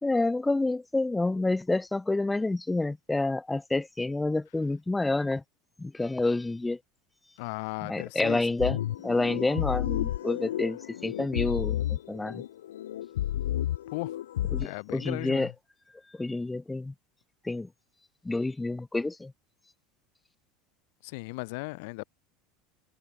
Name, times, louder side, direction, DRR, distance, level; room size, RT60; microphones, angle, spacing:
voice 1, 0.0-5.4 5.8-6.8 7.8-8.8 9.0-12.4 14.5-15.5 16.2-16.9 17.4-17.7 18.2-19.3, left 2 dB, 10° left, 1.3 m, -28 dB
voice 2, 7.4-8.4 13.9-14.1 14.6-15.5 21.0-22.0, left 29 dB, 70° left, 0.6 m, -36 dB
sound 1, 8.6-14.7, left 12 dB, 85° left, 1.0 m, -31 dB
hypercardioid pair, 90°, 0 cm